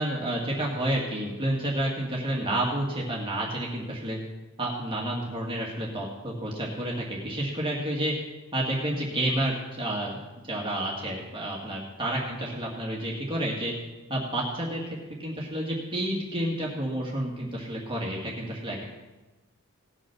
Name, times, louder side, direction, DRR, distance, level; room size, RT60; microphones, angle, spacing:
voice 1, 0.0-4.2 4.6-8.1 8.5-10.2 10.5-13.7 14.1-14.8 15.2-18.8, right 1 dB, 25° right, -3 dB, 2.0 m, -30 dB
18.0 x 6.3 x 6.0 m, 1.1 s
head